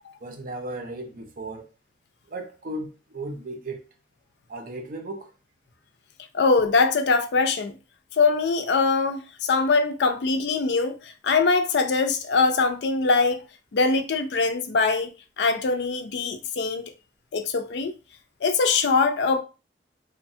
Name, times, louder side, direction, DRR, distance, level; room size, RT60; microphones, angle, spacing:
voice 1, 0.2-1.7 2.3-3.9 4.5-5.3, right 2 dB, 50° right, 0.5 m, -35 dB
voice 2, 6.3-7.7 8.1-13.4 13.7-16.9 17.3-17.9 18.4-19.4, left 4 dB, 70° left, 0.4 m, -22 dB
3.1 x 2.1 x 2.7 m
head